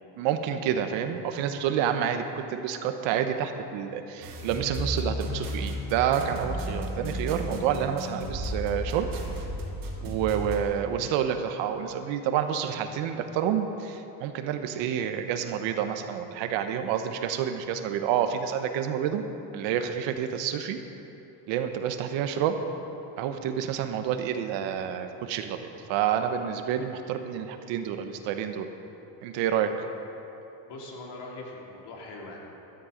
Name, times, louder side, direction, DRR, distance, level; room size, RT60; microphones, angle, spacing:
voice 1, 0.2-9.1 10.0-19.2 19.5-20.8 21.5-22.6 23.2-28.7 29.2-29.7, right 9 dB, 80° right, 7 dB, 1.2 m, -29 dB
sound 1, 4.2-10.6, equal, 50° right, 2.4 m, -33 dB
voice 2, 30.7-32.4, left 2 dB, 60° left, -2 dB, 3.2 m, -41 dB
13.5 x 12.5 x 5.2 m, 3.0 s
cardioid pair, 125°, 44 cm